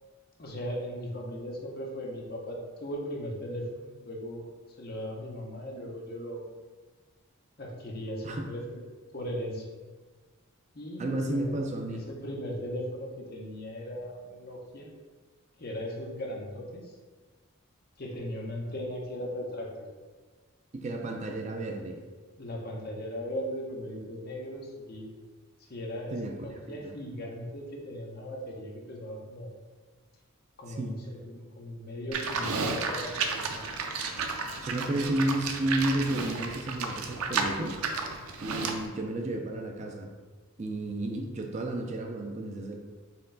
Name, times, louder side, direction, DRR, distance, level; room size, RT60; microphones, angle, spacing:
voice 1, 0.4-4.5 4.8-6.4 7.6-8.8 9.1-9.6 10.7-11.5 11.9-14.9 15.6-16.9 18.0-19.7 22.4-25.2 25.7-29.5 30.6-33.7, equal, 45° left, 0 dB, 0.7 m, -38 dB
voice 2, 11.0-12.0 20.7-22.0 26.1-26.9 30.7-31.0 34.6-37.8 38.4-40.1 40.6-42.8, right 1 dB, 30° right, 2 dB, 0.4 m, -32 dB
Livestock farm animals working animals, 32.1-38.9, right 4 dB, 85° right, 0.5 m, -32 dB
4.3 x 3.1 x 3.8 m, 1.4 s
head